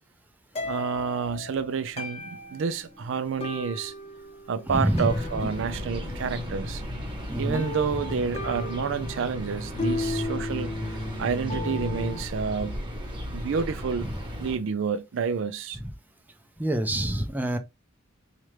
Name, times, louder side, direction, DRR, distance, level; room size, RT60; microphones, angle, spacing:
sound 1, 0.6-12.2, left 2 dB, 30° left, 0.8 m, -35 dB
voice 1, 0.6-3.9 4.5-6.8 7.4-10.7 11.2-12.8 13.3-14.1 14.4-15.8, right 6 dB, 65° right, 0.4 m, -29 dB
voice 2, 4.7-5.1 7.3-7.7 15.8-15.9 16.6-17.6, right 1 dB, 10° right, 0.5 m, -26 dB
sound 2, 4.7-14.6, equal, 25° right, 1.1 m, -35 dB
4.3 x 2.4 x 3.2 m
head